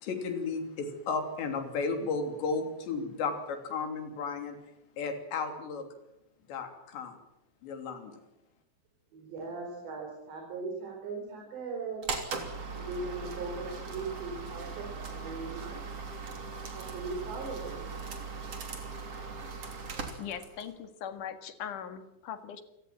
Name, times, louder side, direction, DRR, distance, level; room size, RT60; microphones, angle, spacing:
voice 1, 0.0-4.6 5.0-5.9 6.5-7.2 7.6-8.1, left 4 dB, 75° left, 6 dB, 5.3 m, -34 dB
voice 2, 9.1-12.1 12.7-15.8 16.7-17.9, right 4 dB, 70° right, 1 dB, 6.6 m, -39 dB
sound 1, 12.0-20.7, right 4 dB, 35° right, 3.6 m, -39 dB
voice 3, 20.2-22.6, left 8 dB, 55° left, 9 dB, 2.8 m, -40 dB
29.0 x 17.5 x 7.6 m, 0.86 s
omnidirectional pair, 5.1 m